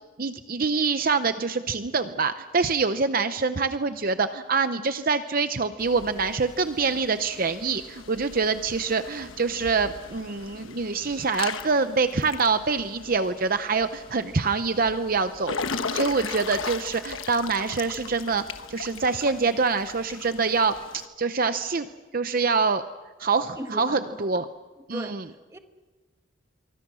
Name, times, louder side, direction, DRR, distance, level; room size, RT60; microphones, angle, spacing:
voice 1, 0.2-15.6 15.9-18.4 18.7-21.9 22.1-22.8 23.2-24.5 24.9-25.2, right 4 dB, 45° right, 10 dB, 0.7 m, -25 dB
Water / Splash splatter / Drip, 5.8-21.1, left 5 dB, 75° left, 1.1 m, -38 dB
voice 2, 23.6-24.3 24.9-25.6, right 1 dB, 15° right, 6 dB, 1.4 m, -39 dB
26.5 x 24.0 x 6.3 m, 1.3 s
head